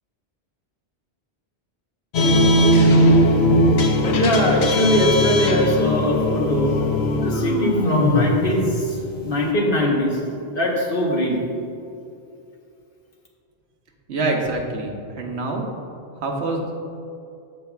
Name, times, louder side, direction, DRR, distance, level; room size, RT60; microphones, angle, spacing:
sound 1, 2.1-9.5, left 1 dB, 80° left, 1.0 m, -19 dB
voice 1, 4.1-6.7 7.2-9.0 9.2-10.2 10.5-11.4, equal, 60° left, -2 dB, 1.4 m, -21 dB
voice 2, 14.1-15.7 16.2-16.7, right 2 dB, 85° right, 1 dB, 1.3 m, -25 dB
14.0 x 5.5 x 2.4 m, 2.6 s
omnidirectional pair, 1.1 m